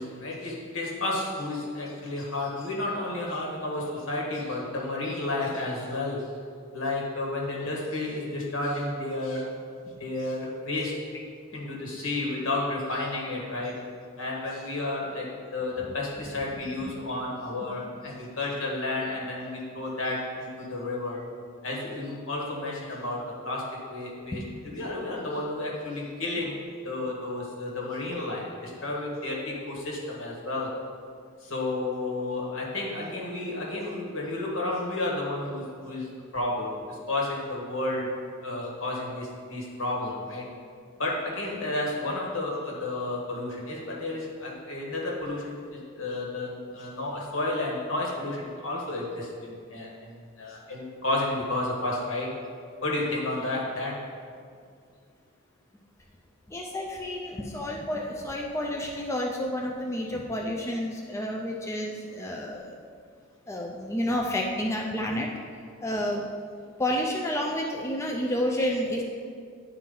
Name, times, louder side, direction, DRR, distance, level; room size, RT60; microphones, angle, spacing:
voice 1, 0.0-6.4 6.7-9.5 9.8-11.1 11.5-13.9 14.2-21.2 21.6-26.6 26.8-30.7 31.4-38.1 38.4-40.5 41.0-52.4 52.8-54.0 68.6-68.7, left 2 dB, 65° left, -3 dB, 1.6 m, -32 dB
voice 2, 56.5-62.7 63.5-65.3 65.8-66.3 66.8-69.0, left 1 dB, 15° left, -1 dB, 0.4 m, -30 dB
10.5 x 4.5 x 3.8 m, 2.2 s
head